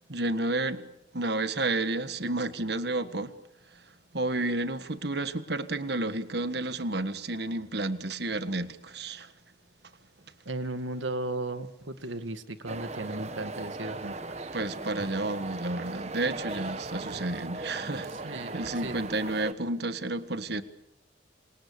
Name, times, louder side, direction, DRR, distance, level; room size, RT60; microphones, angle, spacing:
voice 1, 0.1-0.9 1.1-3.3 3.7-9.3 14.5-20.6, right 2 dB, 60° right, 1.5 m, -31 dB
voice 2, 10.5-14.5 18.1-19.0, right 2 dB, 85° right, 2.0 m, -36 dB
sound 1, 12.7-19.5, right 2 dB, 35° right, 1.2 m, -38 dB
28.0 x 27.5 x 6.8 m
head